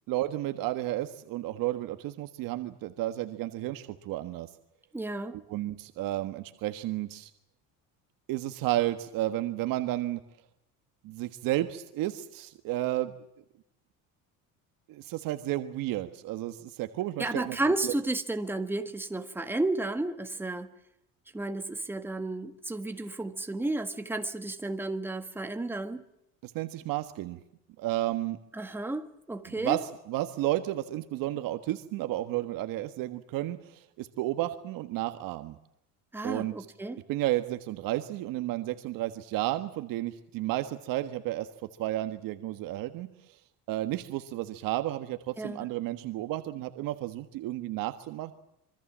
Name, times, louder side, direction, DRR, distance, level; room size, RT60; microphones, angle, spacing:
voice 1, 0.1-4.5 5.3-7.3 8.3-10.2 11.0-13.1 14.9-17.6 17.8-17.9 26.4-27.4 27.8-28.4 29.5-35.6 36.2-36.5 37.1-41.5 41.8-43.1 43.7-48.3, right 15 dB, 65° right, 1.5 m, -32 dB
voice 2, 4.9-5.4 17.2-20.7 21.3-26.0 28.5-29.8 36.1-37.0 45.4-45.7, right 2 dB, 5° right, 1.6 m, -32 dB
26.0 x 24.0 x 7.5 m
cardioid pair, 155°, 37 cm